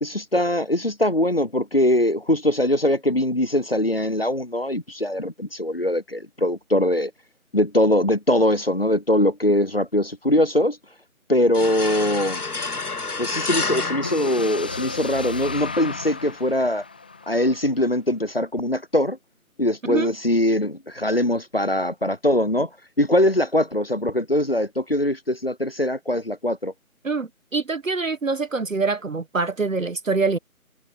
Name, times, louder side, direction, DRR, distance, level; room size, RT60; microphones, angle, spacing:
voice 1, 0.0-7.1 7.5-10.8 11.3-12.4 13.2-16.8 17.3-19.2 19.6-22.7 23.0-26.7, left 1 dB, 45° left, 0.5 m, -22 dB
sound 1, 11.5-15.1, left 3 dB, 85° left, 1.6 m, -29 dB
sound 2, 14.0-17.9, left 4 dB, 5° left, 1.6 m, -33 dB
voice 2, 27.0-30.4, right 4 dB, 60° right, 1.3 m, -25 dB
figure-of-eight pair, 170°, 44 cm